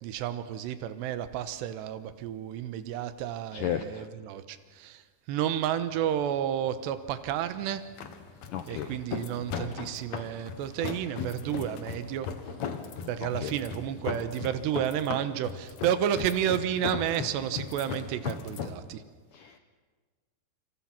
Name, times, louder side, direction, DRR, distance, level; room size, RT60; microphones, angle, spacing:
voice 1, 0.0-5.0 5.3-7.8 8.7-12.3 13.1-19.0, right 10 dB, 80° right, 11 dB, 3.2 m, -31 dB
voice 2, 3.5-4.1 8.5-9.0 13.4-13.5 19.3-19.6, left 10 dB, 85° left, 8 dB, 1.8 m, -34 dB
sound 1, 5.4-18.7, left 6 dB, 55° left, 2.0 m, -38 dB
28.0 x 26.5 x 5.9 m, 1.5 s
omnidirectional pair, 4.9 m